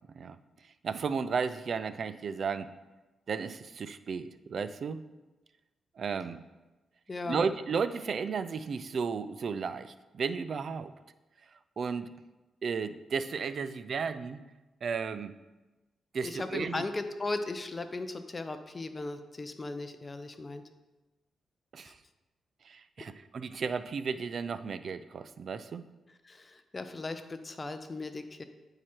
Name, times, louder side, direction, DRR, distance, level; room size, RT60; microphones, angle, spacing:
voice 1, 0.8-2.7 3.3-5.0 6.0-6.4 7.3-10.9 11.8-12.1 12.6-14.4 14.8-15.3 16.1-16.8 21.7-21.9 22.7-25.9, right 5 dB, 55° right, 13 dB, 0.4 m, -34 dB
voice 2, 7.1-7.4 16.2-20.6 21.8-21.9 26.2-28.4, left 2 dB, 25° left, 8 dB, 0.7 m, -37 dB
8.8 x 4.8 x 4.4 m, 1.1 s
cardioid pair, 100°, 0 cm